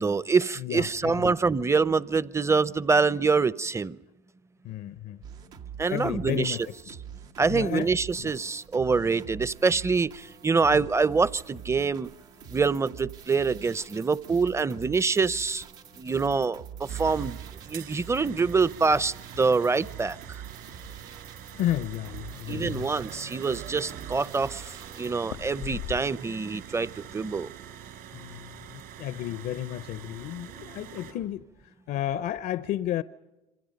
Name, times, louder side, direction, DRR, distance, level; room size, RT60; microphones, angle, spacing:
voice 1, 0.0-4.0 5.8-6.6 7.4-12.1 12.5-15.6 16.0-17.4 17.7-20.2 22.5-24.6 25.0-27.5, right 4 dB, 15° right, 0.7 m, -25 dB
voice 2, 0.6-1.4 4.6-5.2 5.9-6.6 7.5-7.9 8.2-8.3 10.7-10.9 21.5-22.9 28.1-33.0, left 12 dB, 60° left, 0.7 m, -32 dB
sound 1, 5.2-25.1, right 8 dB, 85° right, 2.1 m, -45 dB
sound 2, 16.9-31.1, right 10 dB, 65° right, 4.0 m, -44 dB
sound 3, 21.5-22.3 22.7-22.8 23.1-23.8 25.2-26.5 26.8-27.3, left 13 dB, 80° left, 1.1 m, -40 dB
27.0 x 25.5 x 5.3 m
supercardioid pair, 80°, 17 cm